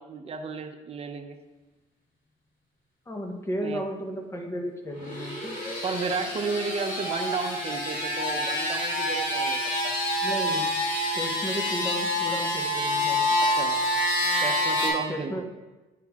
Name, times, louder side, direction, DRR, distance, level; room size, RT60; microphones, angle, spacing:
voice 1, 0.0-1.4 3.6-3.8 5.8-10.0 13.4-13.8 14.4-15.4, right 5 dB, 35° right, 6 dB, 0.8 m, -33 dB
voice 2, 3.1-5.6 10.2-10.7 11.1-13.2 15.1-15.4, equal, 15° left, 2 dB, 1.2 m, -34 dB
sound 1, 4.9-14.9, left 1 dB, 50° left, 2.8 m, -27 dB
10.0 x 4.6 x 3.7 m, 1.1 s
cardioid pair, 110°, 17 cm